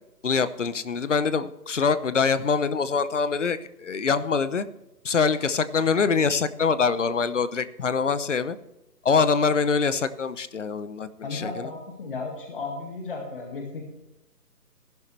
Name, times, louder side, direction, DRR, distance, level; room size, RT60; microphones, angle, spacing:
voice 1, 0.2-4.7 5.0-8.6 9.0-11.7, left 5 dB, 50° left, 14 dB, 0.8 m, -24 dB
voice 2, 11.2-13.8, left 3 dB, 35° left, 1 dB, 1.9 m, -34 dB
16.5 x 11.5 x 3.3 m, 0.95 s
hypercardioid pair, 170°, 49 cm